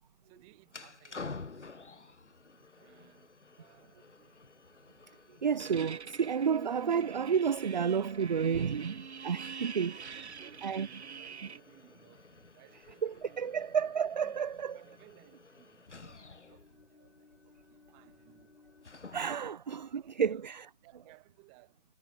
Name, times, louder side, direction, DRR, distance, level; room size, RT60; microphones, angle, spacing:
voice 1, 0.2-2.1 2.8-4.6 9.8-13.7 14.2-14.4 14.7-18.6 19.1-19.3 19.9-20.4 20.8-21.8, right 36 dB, 15° right, 2.4 m, -62 dB
sound 1, 0.7-19.6, left 4 dB, 80° left, 4.6 m, -52 dB
voice 2, 5.4-10.1 10.6-10.9 13.0-14.8 19.1-20.7, right 7 dB, 40° right, 0.4 m, -31 dB
sound 2, 5.6-11.6, right 6 dB, 70° right, 1.4 m, -45 dB
figure-of-eight pair, 155°, 35 cm